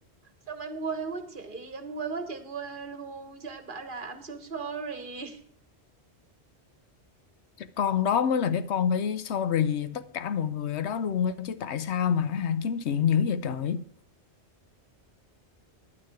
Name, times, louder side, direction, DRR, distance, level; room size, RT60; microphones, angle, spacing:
voice 1, 0.5-5.4, right 4 dB, 50° right, 1.3 m, -36 dB
voice 2, 7.6-13.8, left 8 dB, 80° left, 1.0 m, -27 dB
9.8 x 9.3 x 4.7 m
omnidirectional pair, 1.2 m